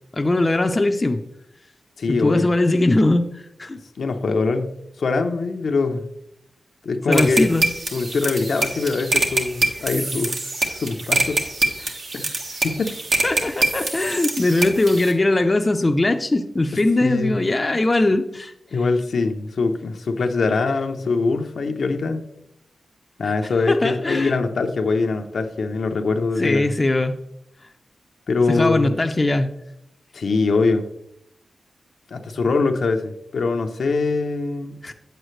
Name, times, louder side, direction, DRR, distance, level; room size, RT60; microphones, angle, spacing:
voice 1, 0.1-1.2 2.1-3.8 7.1-7.7 11.8-12.0 13.2-18.5 23.2-23.3 23.7-24.3 26.4-27.2 28.5-29.5 34.8-34.9, left 2 dB, 30° left, 6 dB, 0.6 m, -20 dB
voice 2, 2.0-2.5 4.0-6.0 6.8-7.5 7.9-11.4 12.1-12.3 12.6-12.9 16.7-17.4 18.7-22.2 23.2-26.7 28.3-29.0 30.1-30.9 32.1-34.7, left 3 dB, 75° left, 5 dB, 0.8 m, -23 dB
sound 1, 7.1-15.1, right 2 dB, 60° right, 1.5 m, -25 dB
8.4 x 7.9 x 3.2 m, 0.78 s
cardioid pair, 60°, 0 cm